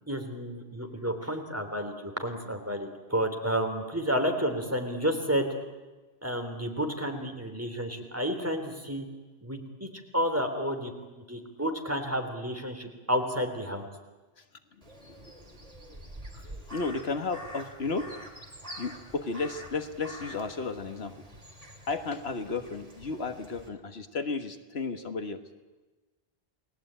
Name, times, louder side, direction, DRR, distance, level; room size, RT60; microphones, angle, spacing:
voice 1, 0.0-5.5 6.2-9.1 9.4-13.9, equal, 15° right, 4 dB, 3.5 m, -31 dB
voice 2, 14.7-15.7 16.3-18.1 18.8-21.3 21.8-25.4, left 4 dB, 80° left, 8 dB, 1.7 m, -34 dB
Crow, 14.8-23.7, equal, 35° right, 3.4 m, -46 dB
29.5 x 20.0 x 9.0 m, 1.2 s
omnidirectional pair, 1.0 m